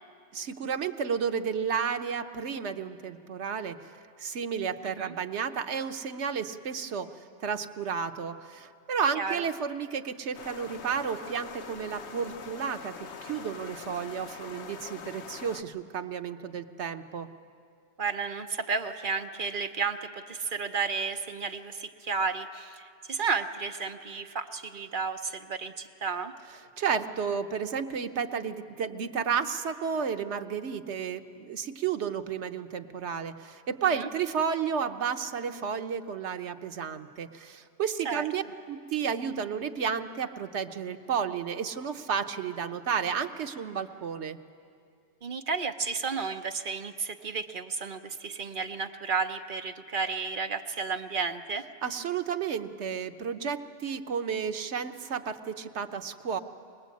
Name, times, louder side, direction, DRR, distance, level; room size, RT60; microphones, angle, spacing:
voice 1, 0.3-3.9 4.2-7.1 7.4-13.0 13.2-17.3 26.8-44.4 51.8-56.4, right 7 dB, 90° right, 8 dB, 1.2 m, -32 dB
voice 2, 4.8-5.1 9.1-9.5 18.0-26.3 33.9-34.1 38.0-38.3 45.2-51.7, right 5 dB, 50° right, 7 dB, 1.0 m, -32 dB
sound 1, 10.3-15.6, left 6 dB, 80° left, 1.2 m, -43 dB
22.0 x 20.0 x 8.4 m, 2.3 s
omnidirectional pair, 1.1 m